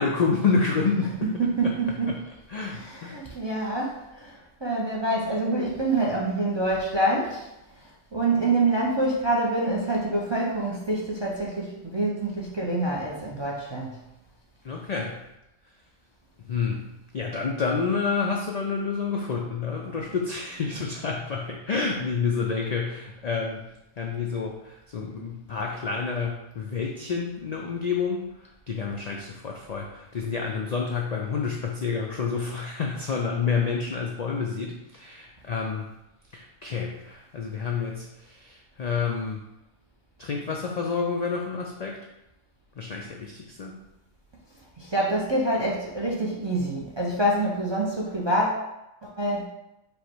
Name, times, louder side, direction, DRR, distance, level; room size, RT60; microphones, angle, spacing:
voice 1, 0.0-1.3 1.6-1.7 2.1-2.2 2.5-3.2 14.6-15.2 16.5-16.9 17.1-23.6 24.0-28.3 28.7-35.9 36.3-39.4 40.2-42.0 42.8-43.8, left 5 dB, 80° left, 0 dB, 0.3 m, -29 dB
voice 2, 1.4-2.1 2.7-7.5 8.1-14.0 44.8-48.6 49.0-49.5, right 2 dB, 40° right, -3 dB, 0.4 m, -26 dB
5.2 x 2.1 x 4.5 m, 0.91 s
omnidirectional pair, 1.3 m